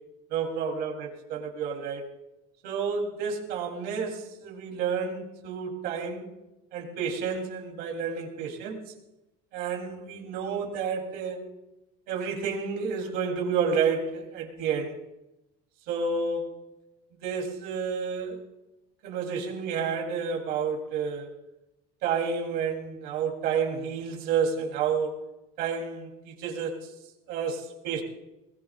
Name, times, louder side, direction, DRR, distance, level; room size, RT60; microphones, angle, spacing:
voice 1, 0.3-2.1 2.6-6.3 6.7-8.8 9.5-11.4 12.1-15.0 15.9-16.5 17.2-18.4 19.0-21.3 22.0-25.3 25.6-26.8 27.3-28.0, right 6 dB, 60° right, 1 dB, 3.4 m, -30 dB
22.0 x 20.5 x 2.5 m, 0.95 s
cardioid pair, 170°, 18 cm